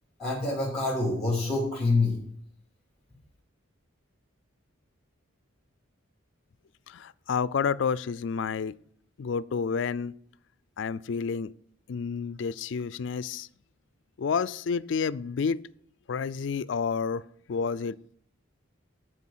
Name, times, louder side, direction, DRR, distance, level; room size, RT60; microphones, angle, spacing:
voice 1, 0.2-2.2, left 2 dB, ahead, 2.7 m, -26 dB
voice 2, 6.9-8.8 9.2-10.1 10.8-11.5 11.9-13.5 14.2-15.6 16.1-17.2 17.5-18.0, left 6 dB, 60° left, 0.4 m, -29 dB
10.0 x 4.6 x 7.3 m
head